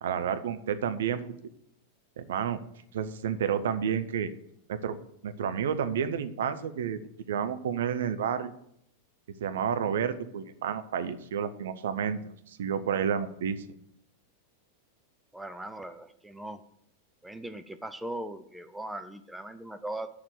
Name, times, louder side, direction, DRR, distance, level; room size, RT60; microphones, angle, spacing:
voice 1, 0.0-1.2 2.2-2.6 2.9-4.3 4.7-5.0 5.2-8.5 9.4-13.6, right 8 dB, 60° right, 10 dB, 0.8 m, -30 dB
voice 2, 15.3-16.6 17.2-20.1, right 1 dB, 5° right, 10 dB, 0.6 m, -39 dB
7.7 x 6.7 x 7.9 m, 0.72 s
figure-of-eight pair, 90°, 0 cm